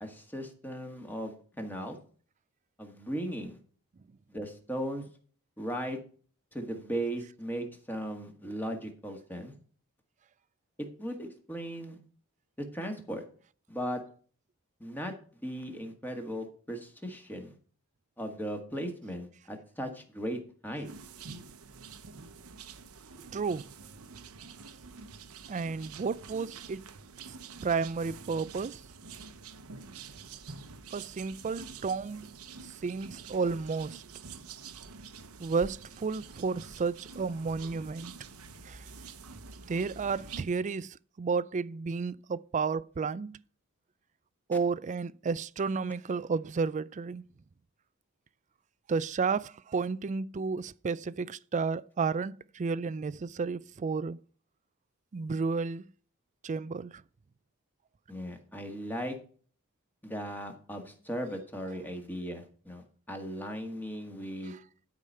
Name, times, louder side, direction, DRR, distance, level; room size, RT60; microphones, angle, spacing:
voice 1, 0.0-2.0 2.8-3.6 4.3-5.1 5.6-6.0 6.5-9.5 11.0-12.0 12.6-13.2 13.7-14.0 14.8-15.1 15.4-17.5 18.2-20.9 58.1-59.2 60.0-64.6, equal, 10° left, 1.7 m, -37 dB
sound 1, 20.8-40.4, right 5 dB, 70° right, 0.9 m, -47 dB
voice 2, 23.3-23.7 25.5-26.8 27.6-28.8 30.9-32.3 32.8-34.0 35.4-38.1 38.7-38.8 39.7-43.4 44.5-47.3 48.9-54.2 55.1-55.8 56.4-56.9, right 4 dB, 35° right, 0.4 m, -32 dB
12.0 x 5.0 x 5.5 m
head